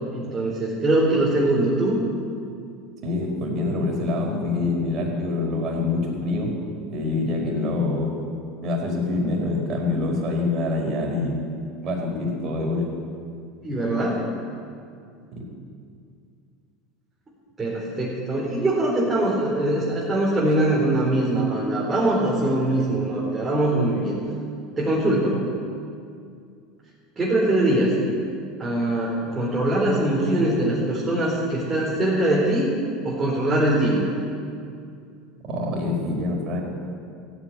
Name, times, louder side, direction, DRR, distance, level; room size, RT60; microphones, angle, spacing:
voice 1, 0.1-2.0 13.6-14.2 17.6-24.1 24.8-25.4 27.2-28.0 28.6-32.7 33.0-34.1, right 1 dB, 20° right, -6 dB, 4.3 m, -22 dB
voice 2, 3.0-6.5 6.9-8.1 8.6-11.4 11.8-12.9 15.4-15.5 35.4-36.6, left 2 dB, 45° right, 0 dB, 4.9 m, -25 dB
15.0 x 9.1 x 9.7 m, 2.3 s
hypercardioid pair, 90°, 0 cm